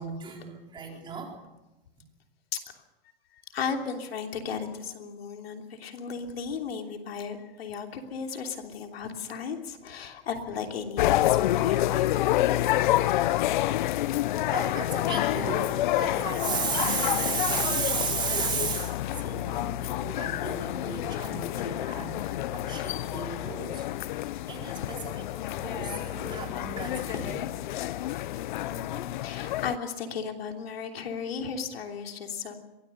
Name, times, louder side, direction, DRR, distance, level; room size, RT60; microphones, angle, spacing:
voice 1, 0.0-1.3 14.1-14.2 14.5-23.9 24.2-27.3, right 6 dB, 15° right, 1 dB, 4.3 m, -34 dB
voice 2, 3.5-12.8 27.1-27.4 28.0-28.1 28.7-32.6, left 6 dB, 80° left, 4 dB, 3.1 m, -35 dB
sound 1, 11.0-29.8, left 14 dB, 55° left, 0.7 m, -28 dB
23.0 x 17.5 x 6.8 m, 1.0 s
hypercardioid pair, 150°, 30 cm